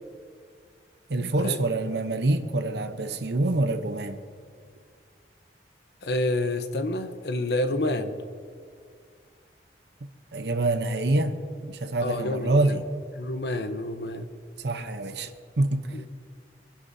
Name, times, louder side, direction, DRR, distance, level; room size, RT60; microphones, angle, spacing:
voice 1, 1.1-4.2 10.3-11.3 11.6-12.8 14.6-15.3 15.6-16.0, right 2 dB, 70° right, 0.9 m, -26 dB
voice 2, 6.0-8.2 12.0-12.7 13.2-14.3 15.9-16.1, left 1 dB, 70° left, 0.9 m, -28 dB
25.5 x 11.0 x 2.8 m
head